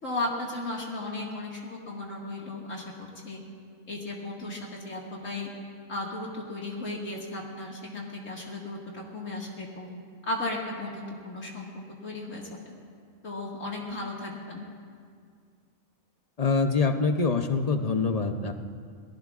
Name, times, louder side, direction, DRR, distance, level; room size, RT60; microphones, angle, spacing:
voice 1, 0.0-3.4 3.9-5.5 5.9-9.9 10.3-11.7 12.0-12.5 13.2-14.7, left 2 dB, 65° left, -3 dB, 2.3 m, -35 dB
voice 2, 16.4-18.5, left 4 dB, 40° left, 6 dB, 0.6 m, -25 dB
28.0 x 18.5 x 2.4 m, 2.1 s
omnidirectional pair, 1.5 m